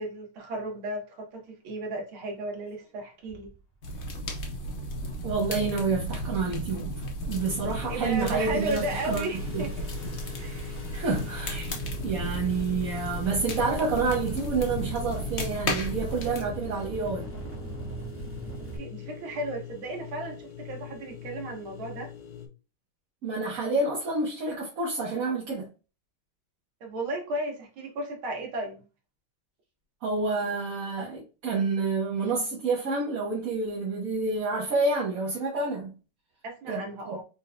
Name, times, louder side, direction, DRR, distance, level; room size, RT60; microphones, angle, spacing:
voice 1, 0.0-3.5 7.9-9.7 10.4-10.9 18.8-22.1 26.8-28.9 36.4-37.2, right 1 dB, 75° right, 2.0 m, -34 dB
Engine starting, 2.4-2.5 3.2-3.6 4.3-4.6 4.9-5.5 5.9-6.5 6.8-7.1 7.4-18.8, right 4 dB, 20° right, 0.4 m, -42 dB
sound 1, 3.8-16.4, equal, 60° left, 0.7 m, -34 dB
voice 2, 5.2-6.9 7.3-9.3 9.5-9.7 10.9-11.7 12.0-17.2 23.2-25.7 30.0-35.9 36.7-37.2, right 3 dB, 50° right, 1.2 m, -28 dB
sound 2, 7.3-22.5, left 9 dB, 90° left, 1.7 m, -43 dB
4.4 x 4.1 x 2.2 m
omnidirectional pair, 2.3 m